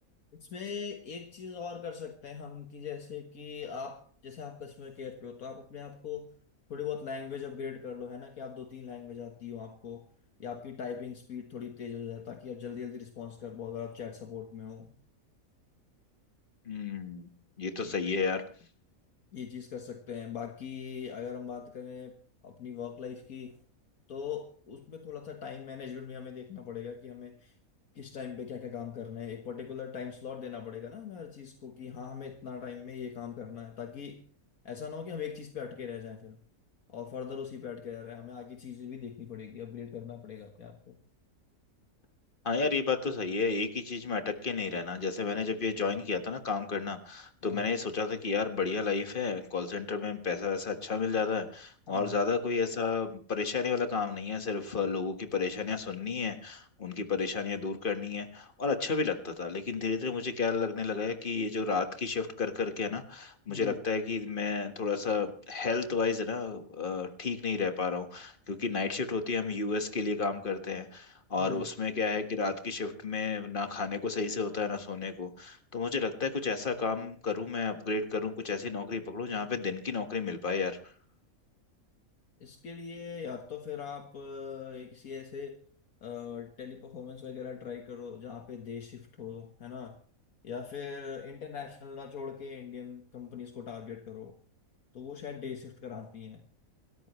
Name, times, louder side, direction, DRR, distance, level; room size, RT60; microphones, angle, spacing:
voice 1, 0.3-6.3 6.7-10.1 10.4-14.9 17.8-18.0 19.3-22.2 22.4-23.5 24.1-27.6 28.0-34.2 34.6-36.4 36.9-41.0 47.4-47.6 51.9-52.1 63.5-63.8 71.4-71.7 82.4-85.6 86.0-90.0 90.4-94.4 94.9-96.4, left 7 dB, 75° left, 4 dB, 1.8 m, -41 dB
voice 2, 16.6-17.3 17.6-18.4 42.4-80.8, left 4 dB, 35° left, 7 dB, 1.7 m, -32 dB
28.0 x 13.5 x 3.2 m, 0.43 s
omnidirectional pair, 1.5 m